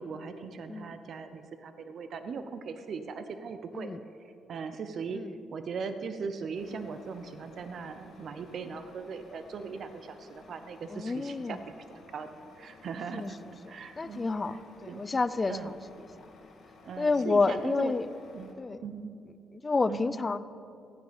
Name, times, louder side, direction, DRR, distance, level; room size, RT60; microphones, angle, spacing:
voice 1, 0.0-3.9 4.5-5.2 5.5-11.6 11.9-12.3 12.6-13.4 13.7-14.2 14.5-14.6 14.9-15.0 15.5-15.7 16.8-17.9 18.3-18.6 18.8-19.1 19.9-20.2, right 5 dB, 60° right, 9 dB, 0.7 m, -39 dB
Truck, 6.5-18.5, left 3 dB, 60° left, 2.1 m, -55 dB
voice 2, 10.9-11.6 13.1-13.3 14.0-15.6 17.0-18.1 18.6-18.8 19.6-20.4, left 3 dB, 30° left, 15 dB, 0.5 m, -29 dB
14.5 x 9.4 x 5.2 m, 2.5 s
cardioid pair, 90°, 0 cm